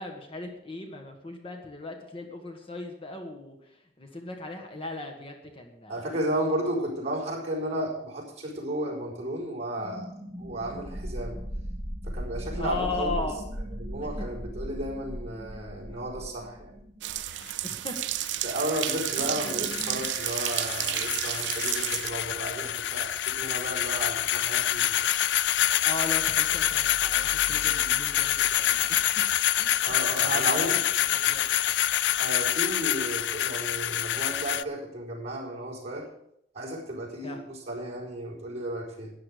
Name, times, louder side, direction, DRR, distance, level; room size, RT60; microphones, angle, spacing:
voice 1, 0.0-6.2 12.5-13.4 14.2-14.3 15.5-15.6 17.6-17.9 19.1-19.4 25.8-29.0 29.6-29.8 30.2-30.8 31.1-31.5 37.2-37.4, left 2 dB, 30° left, 3 dB, 1.5 m, -37 dB
voice 2, 5.9-10.1 10.4-11.4 12.0-13.3 13.8-16.8 18.4-24.9 29.8-30.8 32.2-36.1 36.5-39.1, right 1 dB, 40° right, -3 dB, 4.6 m, -33 dB
sound 1, 9.8-20.0, equal, 60° right, 5.9 m, -38 dB
sound 2, 17.0-22.1, right 15 dB, 75° right, 0.4 m, -31 dB
sound 3, 17.1-34.6, left 12 dB, 70° left, 0.4 m, -27 dB
13.0 x 9.8 x 5.1 m, 0.75 s
head